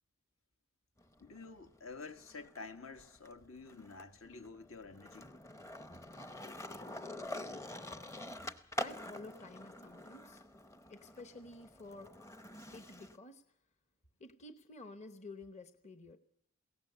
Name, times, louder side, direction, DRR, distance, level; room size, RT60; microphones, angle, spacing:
Skateboard, 1.0-2.6 2.9-13.2, left 1 dB, 15° left, 0.7 m, -46 dB
voice 1, 1.2-5.3, left 4 dB, 70° left, 1.5 m, -50 dB
voice 2, 8.8-10.4 10.9-12.2 12.7-13.4 14.2-16.2, left 2 dB, 30° left, 1.0 m, -51 dB
22.0 x 17.5 x 6.9 m
head